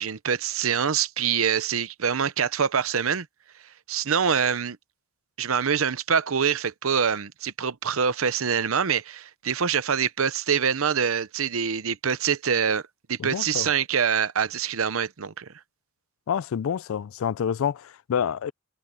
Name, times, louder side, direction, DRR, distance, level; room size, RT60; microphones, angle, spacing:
voice 1, 0.0-3.3 3.9-4.8 5.4-12.8 13.1-15.5, right 7 dB, 70° right, 0.8 m, -25 dB
voice 2, 13.2-13.7 16.3-18.5, left 8 dB, 70° left, 0.4 m, -28 dB
head